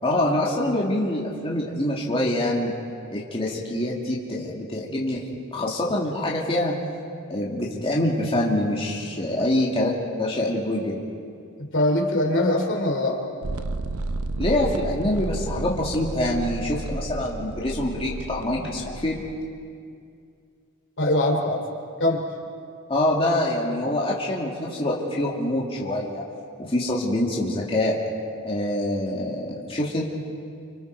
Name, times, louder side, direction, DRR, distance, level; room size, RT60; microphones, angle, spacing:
voice 1, 0.0-2.7 3.1-5.2 5.5-6.8 7.3-9.9 10.2-11.0 14.4-19.2 22.9-26.2 26.6-28.0 28.4-30.1, left 1 dB, 25° left, -4 dB, 2.4 m, -25 dB
voice 2, 11.7-13.2 21.0-21.6 22.0-22.2, left 1 dB, 60° left, 3 dB, 3.0 m, -22 dB
sound 1, 13.4-19.3, right 2 dB, 85° right, 0.8 m, -32 dB
29.5 x 26.0 x 4.7 m, 2.3 s
head